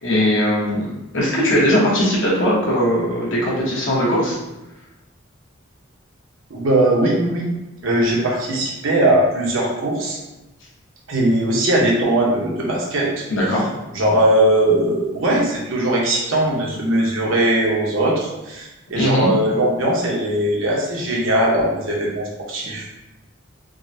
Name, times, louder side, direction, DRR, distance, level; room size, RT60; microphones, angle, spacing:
voice 1, 0.0-0.9 1.1-4.4 13.3-13.7 19.0-19.3, equal, 70° left, -5 dB, 1.0 m, -19 dB
voice 2, 6.5-7.4 7.8-10.2 11.1-13.1 13.9-23.0, right 1 dB, 85° right, -2 dB, 0.8 m, -19 dB
3.6 x 2.1 x 2.6 m, 0.98 s
head